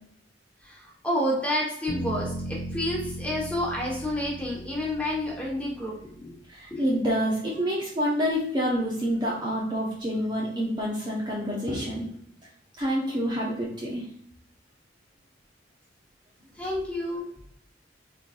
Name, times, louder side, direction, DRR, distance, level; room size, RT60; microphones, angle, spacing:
voice 1, 1.0-6.3 6.7-6.9 16.6-17.3, left 1 dB, 5° left, -4 dB, 1.3 m, -29 dB
sound 1, 1.9-5.9, right 1 dB, 25° left, 1.4 m, -37 dB
voice 2, 6.5-12.2 12.8-14.0, equal, 25° right, -5 dB, 0.8 m, -27 dB
4.3 x 3.8 x 2.5 m, 0.70 s
head